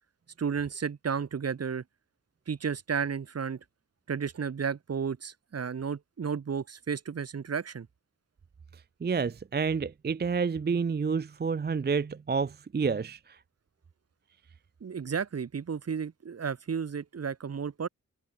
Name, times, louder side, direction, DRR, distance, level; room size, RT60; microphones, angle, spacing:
voice 1, 0.4-1.8 2.5-3.6 4.1-7.9 14.8-17.9, right 6 dB, 50° right, 1.0 m, -33 dB
voice 2, 9.0-13.4, right 5 dB, 30° right, 0.5 m, -29 dB
open air
wide cardioid pair, 140°, 33 cm